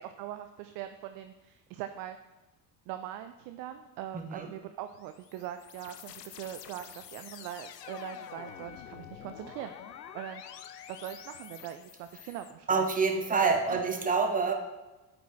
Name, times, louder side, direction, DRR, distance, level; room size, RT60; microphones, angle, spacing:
voice 1, 0.2-2.2 2.9-9.7 10.1-10.4 10.9-12.9 13.4-13.8, right 11 dB, 45° right, 8 dB, 0.5 m, -41 dB
voice 2, 4.1-4.5 12.7-14.5, right 4 dB, 15° right, 4 dB, 1.0 m, -27 dB
sound 1, 4.9-12.5, left 10 dB, 85° left, 0.5 m, -49 dB
Wind instrument woodwind instrument, 7.8-11.7, left 10 dB, 15° left, 0.3 m, -50 dB
8.9 x 4.7 x 3.1 m, 1.1 s
figure-of-eight pair, 65°, 48 cm